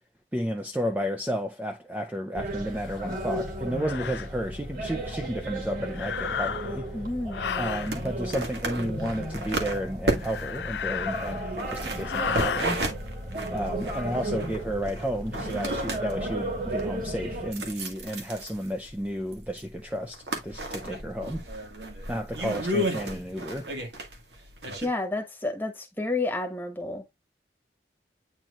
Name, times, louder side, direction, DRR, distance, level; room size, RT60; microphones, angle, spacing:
voice 1, 0.3-6.9 7.6-12.8 13.5-21.4 22.1-23.7, equal, 10° right, 0.5 m, -32 dB
sound 1, 2.3-17.5, right 1 dB, 50° right, 2.5 m, -34 dB
sound 2, 2.9-3.0 3.8-4.3 5.9-6.9 7.3-7.9 10.1-11.6 12.0-12.7, left 7 dB, 75° left, 0.4 m, -33 dB
voice 2, 6.9-7.5 24.8-27.0, left 2 dB, 10° left, 1.2 m, -30 dB
sound 3, 7.5-24.9, right 1 dB, 75° right, 1.8 m, -34 dB
8.9 x 4.4 x 2.4 m
head